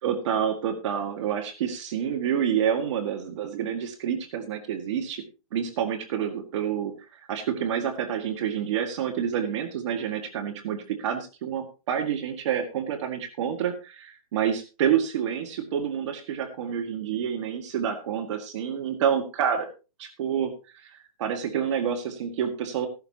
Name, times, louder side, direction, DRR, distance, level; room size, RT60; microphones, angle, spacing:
voice 1, 0.0-5.2 5.5-19.7 20.0-22.9, right 8 dB, 55° right, 6 dB, 2.0 m, -28 dB
16.0 x 11.5 x 2.9 m, 0.31 s
hypercardioid pair, 150°, 18 cm